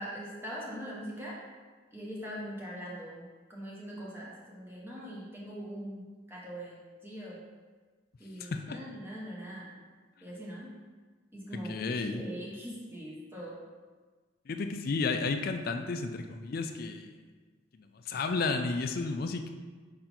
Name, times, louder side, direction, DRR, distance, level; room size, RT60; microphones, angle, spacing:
voice 1, 0.0-1.4 1.9-7.4 8.2-9.8 10.2-10.7 11.3-13.6, equal, 10° right, -5 dB, 1.0 m, -42 dB
voice 2, 8.4-8.8 11.7-12.2 14.5-17.1 18.1-19.5, left 4 dB, 45° left, 7 dB, 0.4 m, -32 dB
5.6 x 3.8 x 4.4 m, 1.4 s
head